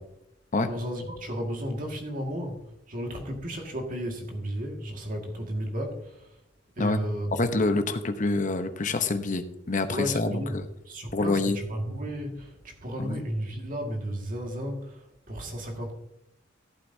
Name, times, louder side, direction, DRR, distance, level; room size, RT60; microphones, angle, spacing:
voice 1, 0.7-6.4 6.8-7.4 9.9-15.9, equal, 45° right, 2 dB, 1.9 m, -33 dB
voice 2, 7.4-10.6 11.1-11.6 13.0-13.2, left 3 dB, 40° left, 8 dB, 0.8 m, -26 dB
14.5 x 8.3 x 2.7 m, 0.86 s
head